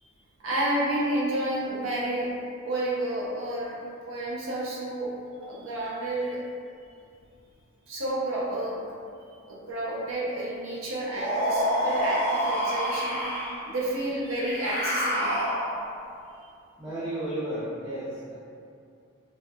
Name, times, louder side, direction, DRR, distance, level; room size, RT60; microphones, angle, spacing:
voice 1, 0.4-2.3 2.6-3.7 4.1-6.4 7.9-8.9 9.5-13.2 13.7-15.4, right 1 dB, 70° right, -5 dB, 0.5 m, -30 dB
sound 1, 11.1-13.6 14.2-15.9, equal, 50° left, 0.8 m, -27 dB
voice 2, 16.8-18.3, right 1 dB, 10° right, -12 dB, 0.3 m, -33 dB
2.2 x 2.0 x 2.8 m, 2.4 s
head